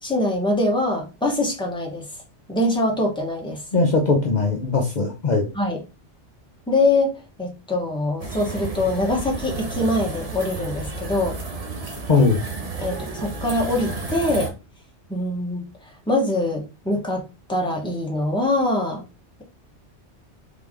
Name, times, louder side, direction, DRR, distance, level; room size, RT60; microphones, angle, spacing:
voice 1, 0.0-2.1 2.5-3.6 5.5-5.8 6.7-11.4 12.8-14.5 15.1-15.6 16.1-17.2 17.5-19.0, left 2 dB, 5° left, 0 dB, 1.0 m, -23 dB
voice 2, 3.7-5.5 12.1-12.4, left 3 dB, 45° left, 0 dB, 0.8 m, -19 dB
sound 1, 8.2-14.5, right 3 dB, 35° right, 0.9 m, -32 dB
3.9 x 3.3 x 3.6 m, 0.29 s
omnidirectional pair, 1.2 m